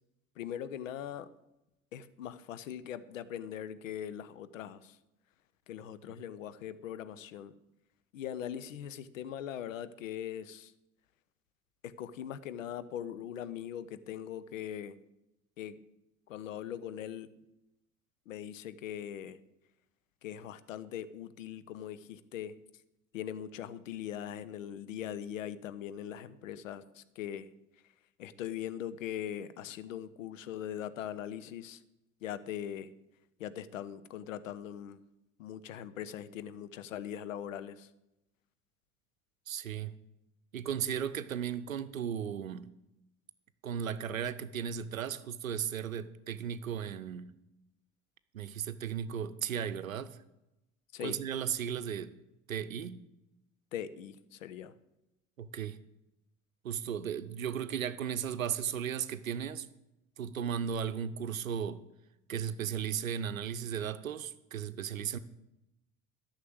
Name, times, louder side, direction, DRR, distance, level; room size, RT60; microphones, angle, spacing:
voice 1, 0.4-1.3 1.9-5.0 5.7-7.5 8.1-10.7 11.8-15.0 15.6-15.8 16.3-17.3 18.3-19.4 20.2-22.6 23.1-27.5 28.2-31.8 32.2-32.9 33.4-35.0 35.4-37.9 50.9-51.2 53.7-54.7, left 10 dB, 75° left, 15 dB, 0.8 m, -41 dB
voice 2, 39.5-39.9 40.5-42.7 43.6-47.4 48.3-50.2 51.0-52.1 52.5-53.0 55.4-55.8 56.6-59.7 60.2-61.8 62.3-65.2, right 8 dB, 85° right, 13 dB, 0.7 m, -35 dB
12.5 x 6.5 x 7.8 m, 0.91 s
figure-of-eight pair, 60°, 40 cm